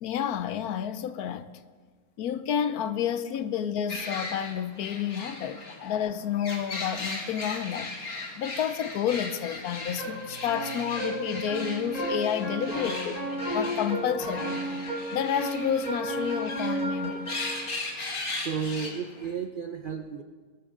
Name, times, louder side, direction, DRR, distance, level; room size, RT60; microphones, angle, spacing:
voice 1, 0.0-1.5 2.2-13.1 13.5-14.6 15.1-17.3, left 9 dB, 75° left, 1.1 m, -30 dB
sound 1, 3.9-19.3, left 2 dB, 55° left, 2.2 m, -38 dB
sound 2, 10.0-17.7, right 1 dB, 25° left, 2.5 m, -33 dB
voice 2, 18.4-20.2, right 6 dB, 55° right, 0.5 m, -33 dB
20.5 x 13.0 x 3.7 m
omnidirectional pair, 1.7 m